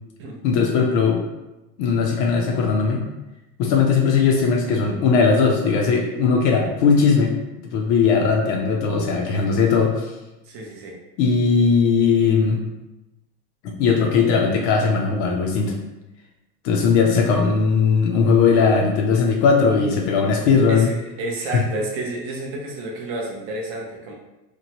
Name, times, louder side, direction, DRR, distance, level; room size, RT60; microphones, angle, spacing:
voice 1, 0.4-1.2 1.8-3.0 3.6-7.3 7.7-10.1 11.2-12.6 13.6-15.7 16.6-20.9 21.5-21.6, left 5 dB, 45° left, 1 dB, 0.4 m, -18 dB
voice 2, 10.5-10.9 20.7-24.1, right 2 dB, 30° right, -1 dB, 0.5 m, -30 dB
3.0 x 2.1 x 2.8 m, 1.0 s
supercardioid pair, 135°, 50 cm